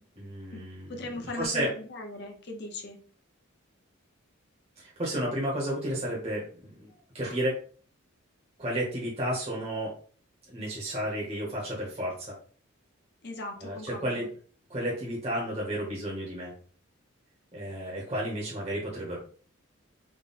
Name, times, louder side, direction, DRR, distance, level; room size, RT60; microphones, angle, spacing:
voice 1, 0.2-1.7 4.8-7.5 8.6-9.9 10.5-12.3 13.6-14.3 14.7-16.5 17.5-19.2, right 1 dB, 30° right, -5 dB, 1.0 m, -32 dB
voice 2, 0.9-3.0 13.2-14.3, left 2 dB, 50° left, 2 dB, 0.8 m, -39 dB
3.7 x 2.2 x 4.0 m, 0.44 s
head